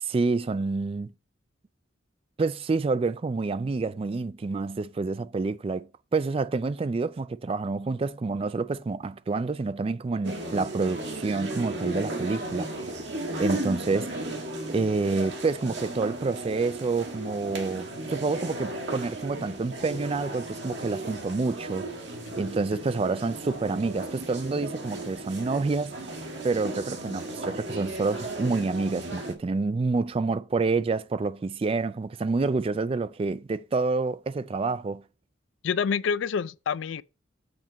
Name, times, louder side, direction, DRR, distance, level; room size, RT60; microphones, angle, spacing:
voice 1, 0.0-1.1 2.4-12.7 13.4-14.1 14.7-21.9 22.4-26.0 26.4-35.0, right 3 dB, 30° right, 0.3 m, -28 dB
sound 1, 10.2-29.3, right 1 dB, 65° right, 1.8 m, -35 dB
voice 2, 35.6-37.0, left 6 dB, 75° left, 0.4 m, -27 dB
7.8 x 4.5 x 5.2 m
head